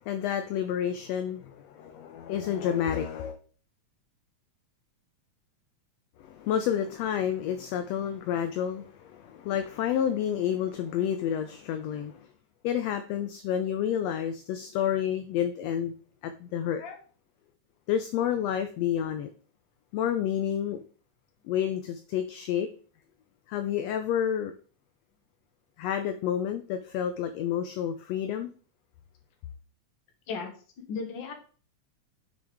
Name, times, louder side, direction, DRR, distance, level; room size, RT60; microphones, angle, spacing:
voice 1, 0.0-3.4 6.2-12.3 12.6-15.9 16.2-16.8 17.9-19.3 19.9-20.8 21.5-22.7 23.5-24.5 25.8-28.5, left 9 dB, 80° left, 8 dB, 1.5 m, -29 dB
voice 2, 30.9-31.3, left 5 dB, 50° left, 3 dB, 1.6 m, -35 dB
6.8 x 6.3 x 3.5 m, 0.40 s
omnidirectional pair, 3.4 m